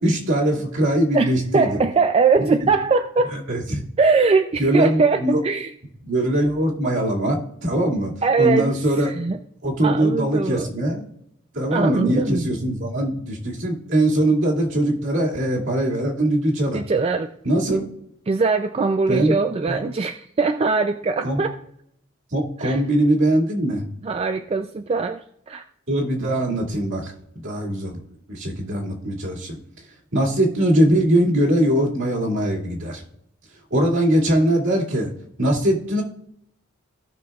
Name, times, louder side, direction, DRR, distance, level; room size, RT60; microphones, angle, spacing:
voice 1, 0.0-1.8 2.5-2.6 3.3-3.8 4.6-5.4 6.0-9.1 9.6-11.0 11.5-16.8 17.4-17.8 19.1-19.3 19.7-19.8 21.2-21.4 22.3-23.8 25.9-28.0 28.3-29.6 30.1-33.0 33.7-35.1 35.4-36.0, right 1 dB, 65° right, -3 dB, 2.3 m, -21 dB
voice 2, 1.1-3.3 4.0-5.7 8.2-9.4 9.8-10.7 11.7-12.5 16.7-17.3 18.3-21.5 22.6-22.8 24.0-25.6, right 4 dB, 30° right, 7 dB, 0.3 m, -21 dB
17.0 x 6.2 x 2.4 m, 0.73 s
head